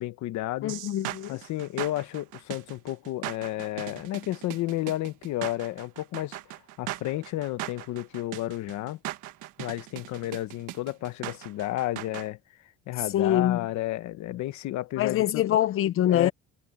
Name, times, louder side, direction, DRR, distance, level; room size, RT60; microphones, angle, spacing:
voice 1, 0.0-0.7 1.3-6.4 6.8-9.0 9.6-12.4 12.9-15.4 16.1-16.3, left 15 dB, 65° left, 1.3 m, -32 dB
voice 2, 0.6-1.4 13.1-13.7 15.0-16.3, left 12 dB, 45° left, 0.6 m, -24 dB
sound 1, 0.7-12.3, right 16 dB, 80° right, 1.4 m, -39 dB
cardioid pair, 165°, 30 cm